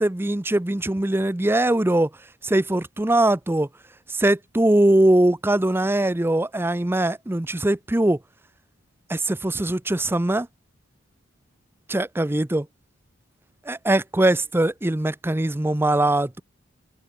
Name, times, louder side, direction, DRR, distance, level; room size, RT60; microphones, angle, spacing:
voice 1, 0.0-2.1 2.4-3.7 4.1-8.2 9.1-10.5 11.9-12.7 13.7-16.4, right 1 dB, 10° right, 0.5 m, -21 dB
head